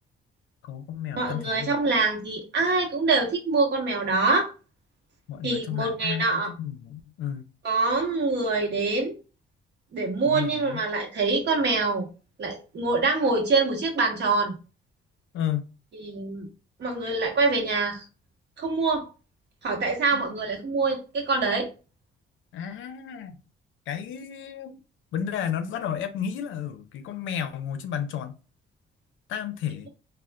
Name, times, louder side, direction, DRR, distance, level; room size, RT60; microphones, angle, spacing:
voice 1, 0.6-1.8 5.3-7.4 10.3-10.8 15.3-15.7 20.1-20.2 22.5-23.4 23.9-24.8 25.1-28.4 29.3-29.9, left 9 dB, 80° left, 0.5 m, -32 dB
voice 2, 1.2-4.5 5.4-6.5 7.6-9.1 9.9-12.1 12.4-14.5 16.0-16.5 16.8-18.0 18.6-19.1 19.6-21.7, right 3 dB, 60° right, 1.1 m, -25 dB
3.5 x 2.3 x 2.2 m
cardioid pair, 90°, 20 cm